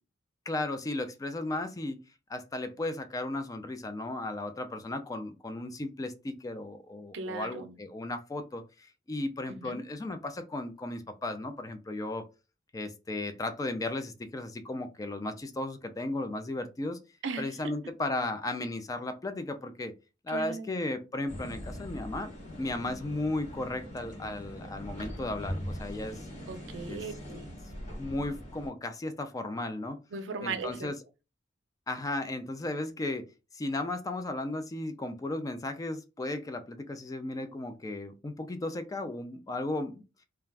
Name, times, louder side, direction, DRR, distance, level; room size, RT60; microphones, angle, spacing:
voice 1, 0.5-2.0 2.3-12.2 12.7-17.0 17.4-19.9 20.2-22.3 22.6-26.3 26.9-27.0 28.0-30.0 30.4-31.0 31.9-33.3 33.5-40.0, left 2 dB, 20° left, 0.3 m, -35 dB
voice 2, 7.1-7.8 9.6-9.8 17.2-17.5 20.3-20.9 26.5-27.4 30.1-30.9, right 4 dB, 80° right, 0.5 m, -37 dB
sound 1, 21.3-28.7, equal, 40° left, 1.0 m, -41 dB
2.4 x 2.2 x 3.2 m
head